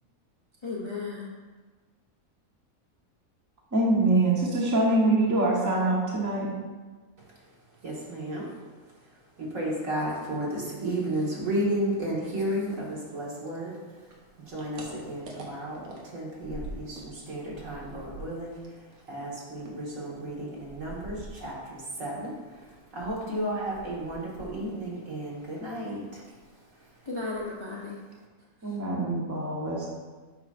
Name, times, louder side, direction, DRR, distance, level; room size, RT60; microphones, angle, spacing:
voice 1, 0.6-1.3 26.7-28.0 28.6-28.8, left 3 dB, 25° left, -5 dB, 0.7 m, -35 dB
voice 2, 3.7-6.5 28.6-29.9, right 2 dB, 15° right, -3 dB, 1.0 m, -24 dB
voice 3, 7.8-8.5 9.4-13.8 14.5-18.6 19.1-26.2, right 1 dB, 65° right, -5 dB, 2.1 m, -33 dB
sound 1, 14.1-17.1 17.4-21.9 22.2-25.0 25.2-25.9 26.2-26.5 26.8-26.9 27.2-27.7, right 2 dB, 90° right, 1.5 m, -45 dB
8.0 x 5.9 x 2.5 m, 1.3 s
omnidirectional pair, 1.5 m